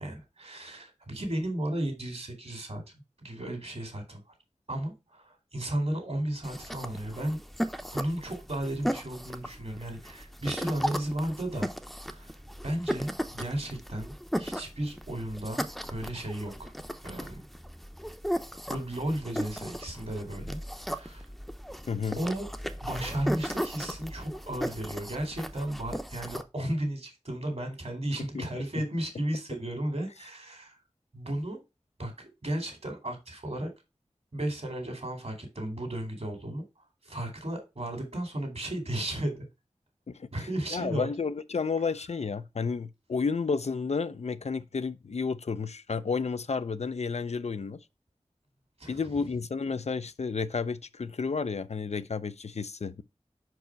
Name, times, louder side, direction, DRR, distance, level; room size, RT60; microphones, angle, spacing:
voice 1, 0.0-2.8 3.2-4.2 4.7-7.4 7.9-11.7 12.0-12.4 12.6-16.7 17.0-17.4 18.7-21.3 22.2-22.5 22.8-30.8 31.1-31.6 32.0-33.7 34.3-36.6 37.0-39.4 40.3-41.1 48.8-49.0, right 1 dB, 65° right, 2.2 m, -34 dB
sound 1, 6.4-26.4, equal, ahead, 0.7 m, -36 dB
voice 2, 21.9-22.2 28.3-28.5 28.7-28.8 40.1-47.8 48.9-53.0, left 5 dB, 70° left, 0.5 m, -31 dB
5.2 x 4.7 x 4.5 m
wide cardioid pair, 40°, 12 cm